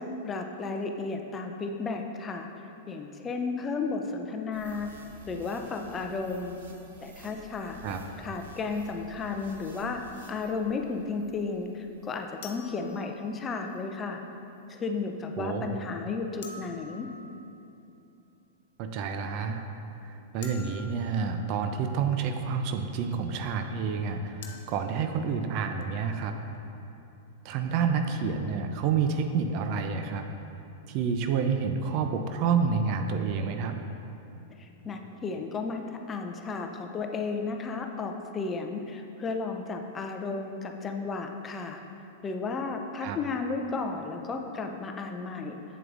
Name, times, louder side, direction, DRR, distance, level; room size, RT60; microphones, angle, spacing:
voice 1, 0.0-2.5 2.9-4.9 5.3-6.6 7.0-10.0 10.3-14.2 14.7-17.1 34.6-41.8 42.2-45.6, left 4 dB, 25° left, 4 dB, 0.5 m, -33 dB
sound 1, 4.5-13.2 13.7-13.8, equal, 75° right, 1.0 m, -52 dB
sound 2, 9.0-9.1 12.4-13.7 16.4-17.8 20.4-21.7 24.4-24.6, left 4 dB, 60° left, 0.7 m, -47 dB
voice 2, 15.4-15.7 18.8-19.6 20.1-26.3 27.4-30.3 30.9-33.8 43.0-43.2, right 6 dB, 45° right, 6 dB, 0.5 m, -29 dB
8.0 x 7.5 x 2.5 m, 2.8 s
hypercardioid pair, 100°, 0 cm